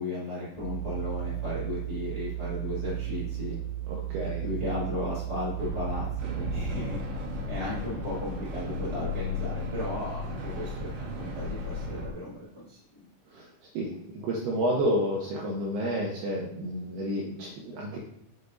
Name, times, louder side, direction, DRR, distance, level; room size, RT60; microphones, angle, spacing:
voice 1, 0.0-3.5 4.2-7.0 7.5-13.1, left 2 dB, 20° right, -11 dB, 1.0 m, -35 dB
sound 1, 0.6-6.8, right 13 dB, 85° left, 3.4 m, -34 dB
voice 2, 3.9-4.4 13.3-13.5 13.7-18.0, equal, 85° right, -2 dB, 2.2 m, -30 dB
sound 2, 5.6-12.1, left 2 dB, 70° right, 2.8 m, -35 dB
6.8 x 6.6 x 2.6 m, 0.81 s
omnidirectional pair, 5.5 m